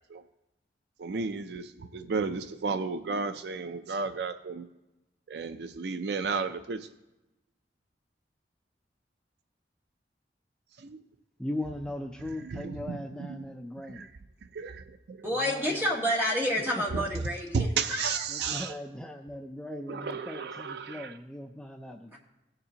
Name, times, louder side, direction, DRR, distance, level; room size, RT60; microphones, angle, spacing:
voice 1, 1.0-4.7 5.3-6.9 10.8-11.0 12.5-13.0 13.9-14.1 14.5-15.3 16.9-17.0 17.5-18.7 19.9-21.1, right 4 dB, 65° right, 0.4 m, -33 dB
voice 2, 11.4-14.1 15.3-15.8 16.8-17.2 18.3-22.2, left 1 dB, 5° left, 0.4 m, -39 dB
voice 3, 15.2-18.7 22.1-22.2, equal, 15° right, 1.8 m, -30 dB
18.0 x 6.7 x 2.8 m
head